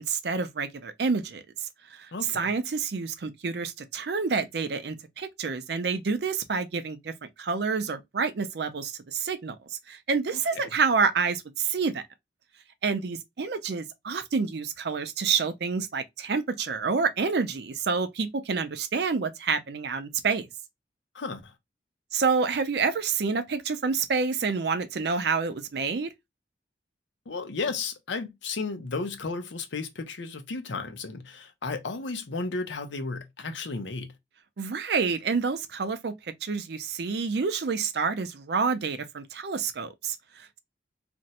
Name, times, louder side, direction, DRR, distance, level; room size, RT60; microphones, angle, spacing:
voice 1, 0.0-1.4 1.9-7.1 7.4-9.6 9.9-12.0 12.8-20.5 22.1-26.1 34.6-40.6, right 5 dB, 65° right, 0.5 m, -28 dB
voice 2, 2.1-2.4 10.5-10.7 21.1-21.5 27.3-34.1, left 4 dB, 90° left, 0.7 m, -33 dB
2.6 x 2.1 x 4.0 m
head